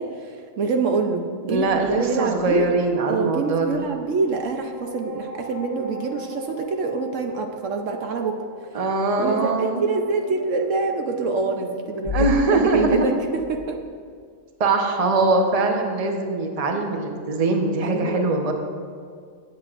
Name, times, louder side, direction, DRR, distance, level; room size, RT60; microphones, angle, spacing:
voice 1, 0.0-2.7 3.1-8.4 9.2-13.1 13.5-13.8 17.8-18.3, right 4 dB, 70° right, 4 dB, 1.0 m, -26 dB
sound 1, 1.5-13.8, left 4 dB, 15° left, 1.2 m, -36 dB
voice 2, 1.5-3.9 8.7-9.8 12.1-13.2 14.6-18.5, right 3 dB, 30° right, 3 dB, 0.9 m, -22 dB
17.5 x 8.2 x 2.5 m, 2.1 s
omnidirectional pair, 1.4 m